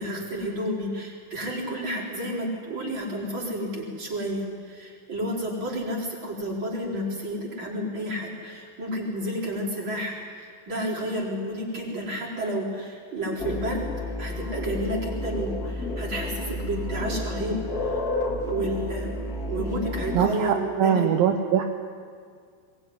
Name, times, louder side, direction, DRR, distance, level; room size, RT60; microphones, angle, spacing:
voice 1, 0.0-13.9 14.2-18.0 18.5-19.1 19.5-21.1, equal, 25° right, -2 dB, 4.8 m, -31 dB
sound 1, 13.4-20.3, left 2 dB, 30° left, 2.1 m, -31 dB
voice 2, 20.1-21.6, right 8 dB, 75° right, 4 dB, 2.3 m, -22 dB
21.5 x 20.5 x 9.7 m, 2.1 s
omnidirectional pair, 5.3 m